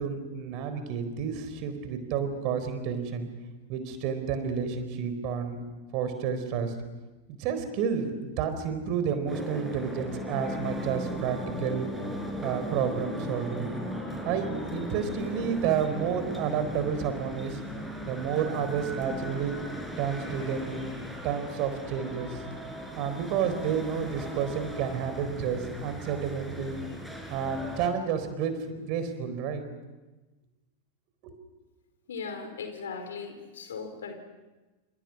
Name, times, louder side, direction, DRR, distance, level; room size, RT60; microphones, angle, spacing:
voice 1, 0.0-3.3 3.7-5.6 5.9-6.7 7.4-11.9 12.4-13.7 14.2-17.6 18.1-19.6 20.0-20.9 21.2-22.4 23.0-26.8 27.3-29.6 31.2-31.3, right 7 dB, 45° right, 9 dB, 4.0 m, -30 dB
sound 1, 9.3-27.9, equal, ahead, 4.8 m, -37 dB
voice 2, 32.1-34.1, left 5 dB, 65° left, 6 dB, 4.6 m, -38 dB
28.0 x 27.0 x 6.0 m, 1.1 s
figure-of-eight pair, 90°, 0 cm